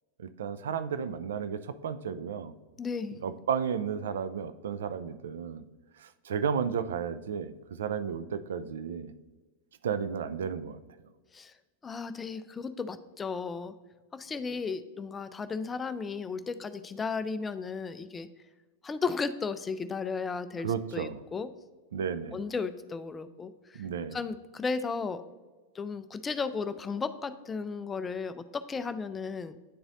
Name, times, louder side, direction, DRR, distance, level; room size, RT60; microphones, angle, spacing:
voice 1, 0.2-2.5 3.2-5.6 6.0-9.1 9.8-10.8 20.6-21.2 21.9-22.4 23.7-24.2, right 7 dB, 60° right, 12 dB, 0.3 m, -33 dB
voice 2, 2.8-3.2 11.3-11.5 11.8-13.7 14.1-18.3 18.8-21.5 22.3-23.8 24.1-25.2 25.7-29.6, left 4 dB, 15° left, 12 dB, 0.3 m, -34 dB
10.0 x 3.9 x 2.6 m, 1.3 s
figure-of-eight pair, 90°, 0 cm